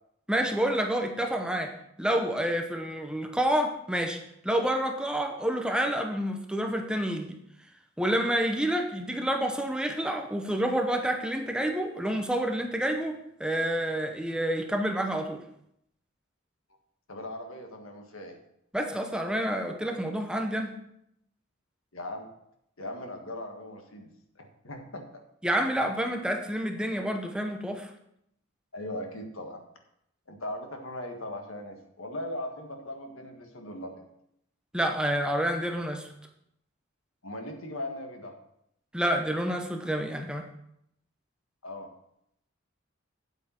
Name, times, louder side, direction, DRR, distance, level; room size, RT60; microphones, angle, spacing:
voice 1, 0.3-1.7 2.0-7.4 8.0-15.4 18.7-20.8 25.4-27.9 34.7-36.1 38.9-40.5, right 1 dB, 5° right, 4 dB, 0.8 m, -28 dB
voice 2, 17.1-18.4 21.9-22.3 22.8-24.1 24.3-25.2 28.7-29.6 30.3-34.0 37.2-38.3 41.6-41.9, left 1 dB, 80° left, 4 dB, 1.6 m, -39 dB
8.9 x 8.2 x 4.4 m, 0.74 s
head